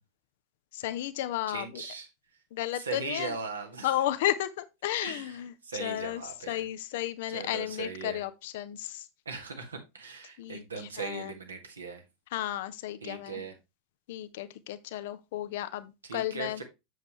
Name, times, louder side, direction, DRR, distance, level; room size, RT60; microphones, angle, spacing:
voice 1, 0.7-1.8 2.5-3.4 3.8-5.5 5.8-9.1 10.4-11.3 12.3-13.4 14.1-16.6, left 13 dB, 55° left, 0.9 m, -33 dB
voice 2, 1.5-2.1 2.7-3.9 5.0-6.7 7.3-8.2 9.3-12.0 13.0-13.6 16.0-16.6, right 5 dB, 75° right, 1.9 m, -39 dB
7.5 x 7.5 x 3.1 m
figure-of-eight pair, 80°, 0 cm